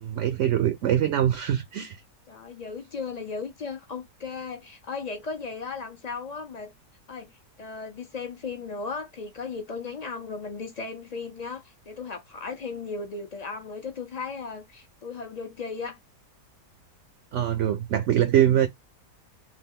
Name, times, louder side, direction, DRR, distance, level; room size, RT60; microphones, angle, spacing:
voice 1, 0.0-2.0 17.3-18.7, right 11 dB, 70° right, 0.7 m, -23 dB
voice 2, 2.3-6.7 7.1-7.3 7.6-16.0, left 4 dB, 60° left, 0.4 m, -36 dB
3.2 x 2.8 x 3.6 m
omnidirectional pair, 1.7 m